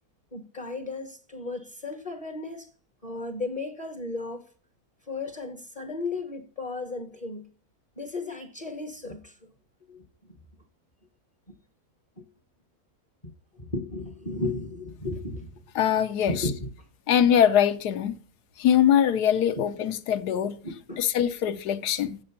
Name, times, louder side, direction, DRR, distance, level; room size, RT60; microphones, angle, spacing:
voice 1, 0.3-2.7 3.0-4.5 5.1-7.5 8.0-9.3 9.9-10.0 11.5-11.6 12.2-12.3 13.5-15.5 16.3-16.7 20.6-21.0, left 2 dB, 30° left, 0.9 m, -34 dB
voice 2, 15.7-16.5 17.1-18.2 18.6-20.6 21.0-22.2, left 9 dB, 85° left, 1.3 m, -22 dB
7.7 x 7.4 x 5.7 m
omnidirectional pair, 1.7 m